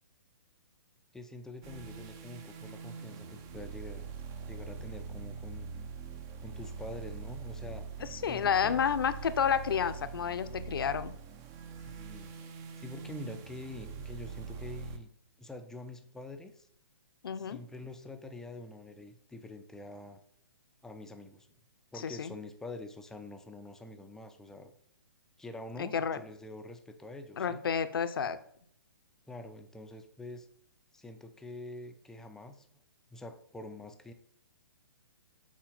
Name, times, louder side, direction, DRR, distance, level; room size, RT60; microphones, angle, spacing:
voice 1, 1.1-4.1 4.5-5.7 6.4-7.8 8.3-8.9 11.8-12.3 12.8-15.1 15.4-16.7 17.4-20.2 20.8-21.5 21.9-24.7 25.4-27.7 29.3-30.5 30.9-32.7 33.1-34.1, left 2 dB, 5° left, 6 dB, 0.6 m, -46 dB
sound 1, 1.6-15.0, right 5 dB, 25° right, 0.8 m, -43 dB
voice 2, 8.0-11.1 17.2-17.6 22.0-22.3 25.8-26.2 27.4-28.4, left 7 dB, 65° left, 12 dB, 0.8 m, -30 dB
7.4 x 4.2 x 5.9 m, 0.65 s
hypercardioid pair, 140°, 13 cm